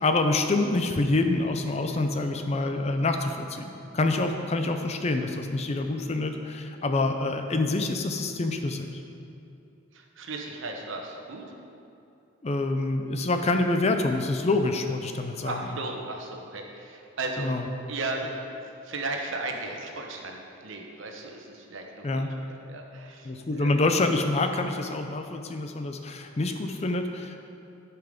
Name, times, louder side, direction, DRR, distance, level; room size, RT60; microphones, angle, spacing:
voice 1, 0.0-9.0 12.4-15.6 17.4-17.7 22.0-22.3 23.2-27.4, left 2 dB, 30° left, 5 dB, 0.5 m, -26 dB
voice 2, 9.9-11.5 15.4-17.5 17.9-18.4 18.8-23.7, right 2 dB, 60° right, 2 dB, 1.1 m, -36 dB
11.0 x 5.8 x 5.1 m, 2.7 s
head